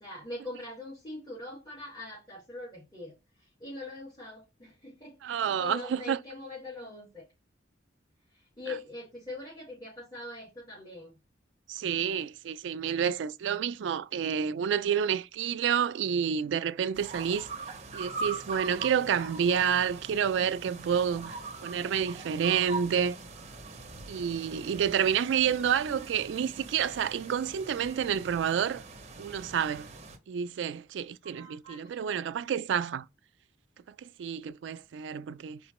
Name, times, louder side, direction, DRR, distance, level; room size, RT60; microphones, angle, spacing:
voice 1, 0.0-7.2 8.3-11.1 31.2-32.0, left 2 dB, 25° left, 2.5 m, -43 dB
voice 2, 5.2-6.2 11.7-17.5 17.9-23.2 24.1-28.8 29.2-29.9 30.3-33.1 34.0-35.6, right 8 dB, 80° right, 0.3 m, -29 dB
sound 1, 16.9-30.2, right 3 dB, 35° right, 0.8 m, -42 dB
4.3 x 3.8 x 2.9 m
head